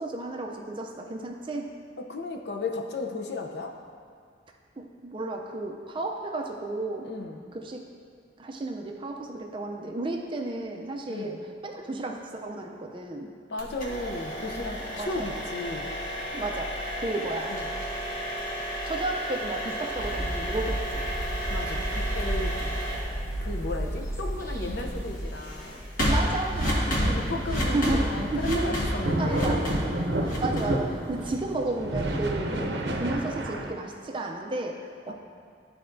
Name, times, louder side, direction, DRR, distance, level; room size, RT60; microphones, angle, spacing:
voice 1, 0.0-1.7 4.8-7.1 7.5-7.8 8.4-13.3 15.0-15.2 16.3-17.8 18.8-21.1 26.0-26.9 27.7-29.7 30.4-35.1, right 2 dB, 30° right, 1 dB, 0.5 m, -33 dB
voice 2, 2.0-3.8 7.0-7.4 11.1-11.4 13.5-15.9 17.5-17.7 21.5-22.6 23.4-25.8 26.8-29.7 32.5-32.8 35.1-35.2, left 2 dB, 70° left, 3 dB, 0.6 m, -35 dB
sound 1, 13.6-31.5, equal, 50° left, 1.3 m, -32 dB
sound 2, 20.0-25.2, right 1 dB, 15° left, 0.9 m, -32 dB
sound 3, 27.0-33.7, right 1 dB, 70° right, 0.6 m, -30 dB
12.0 x 4.2 x 2.6 m, 2.3 s
head